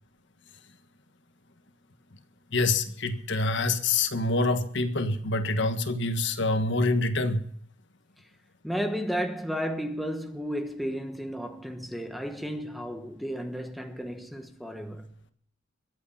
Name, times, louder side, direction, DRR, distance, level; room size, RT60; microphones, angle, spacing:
voice 1, 2.5-7.5, left 2 dB, 65° left, 1.5 m, -26 dB
voice 2, 8.6-15.1, equal, ahead, 1.1 m, -33 dB
22.5 x 8.7 x 5.7 m
head